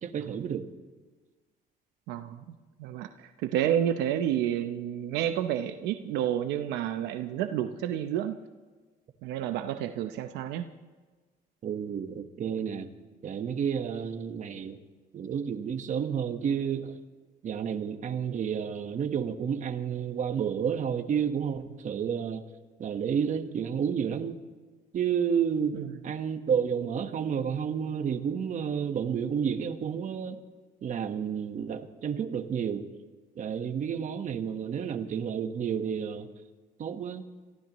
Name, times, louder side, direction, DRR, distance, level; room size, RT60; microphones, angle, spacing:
voice 1, 0.0-0.7 11.6-12.9 13.2-14.8 15.1-17.0 17.4-22.4 22.8-24.4 24.9-25.8 26.0-30.4 30.8-32.9 33.4-36.3 36.8-37.2, right 7 dB, 45° right, 7 dB, 1.3 m, -30 dB
voice 2, 2.1-2.5 2.8-8.4 9.2-10.7 25.7-25.9, right 10 dB, 90° right, 8 dB, 0.7 m, -30 dB
29.0 x 15.5 x 3.1 m, 1.4 s
cardioid pair, 110°, 17 cm